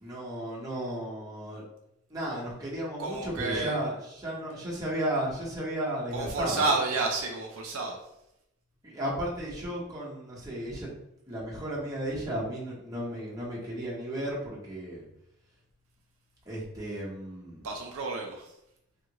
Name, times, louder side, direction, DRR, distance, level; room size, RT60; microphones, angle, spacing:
voice 1, 0.0-1.6 2.1-6.7 8.8-10.9 11.3-15.0 16.5-17.7, right 1 dB, 15° right, -6 dB, 1.0 m, -34 dB
voice 2, 3.0-3.8 6.1-8.0 17.6-18.4, right 3 dB, 70° right, 1 dB, 0.5 m, -30 dB
3.5 x 2.4 x 2.9 m, 0.81 s
head